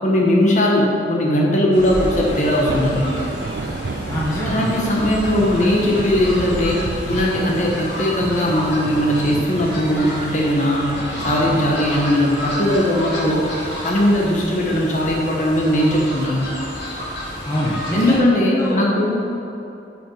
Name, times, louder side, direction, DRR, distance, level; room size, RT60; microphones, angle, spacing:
voice 1, 0.0-3.1 4.5-13.5 13.8-16.4 17.9-19.1, left 1 dB, 40° left, -2 dB, 1.2 m, -19 dB
Fowl, 1.7-18.2, equal, 80° left, 1.8 m, -31 dB
Thunder / Rain, 2.3-16.3, right 3 dB, 65° right, 0.4 m, -33 dB
voice 2, 4.1-4.7 17.5-18.1 18.6-18.8, equal, 15° left, -6 dB, 1.0 m, -24 dB
9.7 x 5.6 x 4.7 m, 2.8 s
head